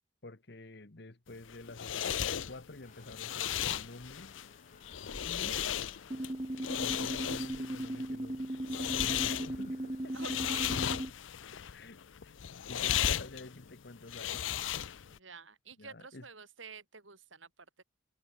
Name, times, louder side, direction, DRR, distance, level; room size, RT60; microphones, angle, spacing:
voice 1, 0.2-4.3 5.2-5.6 6.8-8.4 8.9-10.4 11.7-12.4 12.7-14.5 15.8-16.3, left 2 dB, 55° left, 1.3 m, -49 dB
sound 1, 1.3-15.2, left 10 dB, 80° left, 0.6 m, -36 dB
sound 2, 2.8-13.8, left 1 dB, 40° left, 3.1 m, -58 dB
voice 2, 5.5-5.8 10.1-10.8 15.1-17.5 17.8-17.9, right 5 dB, 85° right, 4.7 m, -49 dB
sound 3, 6.1-11.1, right 1 dB, 25° right, 1.0 m, -37 dB
head